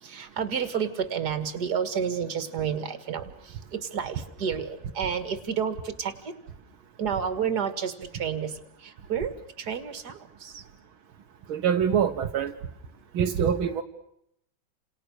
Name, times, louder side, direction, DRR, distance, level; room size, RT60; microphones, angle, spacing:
voice 1, 0.0-6.3 7.0-10.6, right 7 dB, 50° right, 11 dB, 2.6 m, -31 dB
voice 2, 11.5-12.5 13.1-13.8, right 8 dB, 80° right, 6 dB, 2.0 m, -24 dB
30.0 x 27.5 x 6.6 m, 0.77 s
omnidirectional pair, 2.3 m